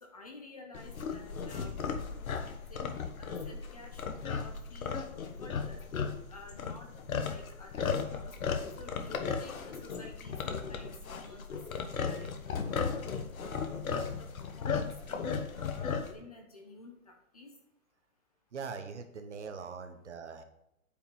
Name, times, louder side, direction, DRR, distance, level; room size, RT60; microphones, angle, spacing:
voice 1, 0.0-1.8 2.7-2.9 3.2-5.8 6.3-6.9 7.2-8.3 8.8-13.0 13.4-17.5, left 2 dB, 25° left, 3 dB, 0.8 m, -52 dB
sound 1, 0.7-16.1, left 5 dB, 70° left, 1.3 m, -36 dB
voice 2, 18.5-20.4, right 5 dB, 50° right, 7 dB, 1.2 m, -42 dB
8.8 x 5.2 x 5.3 m, 0.82 s
hypercardioid pair, 180°, 44 cm